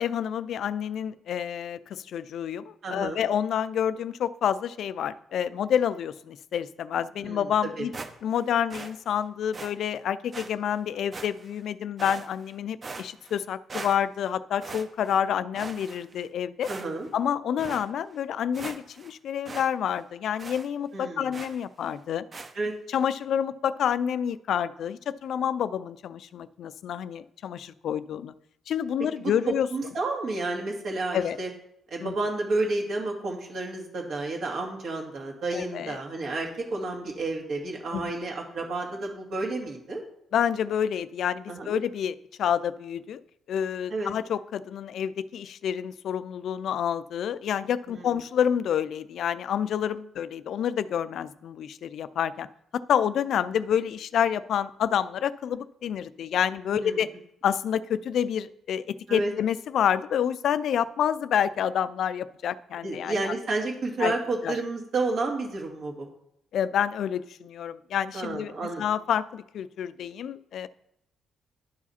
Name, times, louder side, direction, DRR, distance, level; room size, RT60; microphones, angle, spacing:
voice 1, 0.0-7.9 8.2-16.7 17.1-22.2 22.9-28.3 28.7-29.7 31.1-31.4 32.0-32.1 35.5-36.0 37.9-38.1 40.3-43.2 43.5-52.5 52.7-57.1 57.4-63.3 64.0-64.1 64.4-64.5 66.5-70.7, left 9 dB, 70° left, 15 dB, 0.3 m, -28 dB
voice 2, 2.8-3.2 7.2-7.9 16.7-17.1 20.9-21.3 22.5-22.7 29.2-31.5 31.9-40.0 41.5-41.8 43.9-44.1 47.9-48.1 56.7-57.0 59.1-59.3 62.8-66.1 68.1-68.8, right 2 dB, 60° right, 0 dB, 2.0 m, -31 dB
sound 1, 7.9-8.4 8.7-8.9 9.5-9.7 10.3-10.5 11.1-11.6 12.0-12.5 12.8-13.4 13.7-14.3 14.6-15.2 15.5-16.2 16.6-17.1 17.6-17.8 18.2-18.3 18.5-19.1 19.5-19.7 19.9-20.0 20.4-20.7 21.3-21.6 22.3-22.5, right 3 dB, 35° right, 0.8 m, -40 dB
11.0 x 4.8 x 4.2 m, 0.77 s
cardioid pair, 90°, 0 cm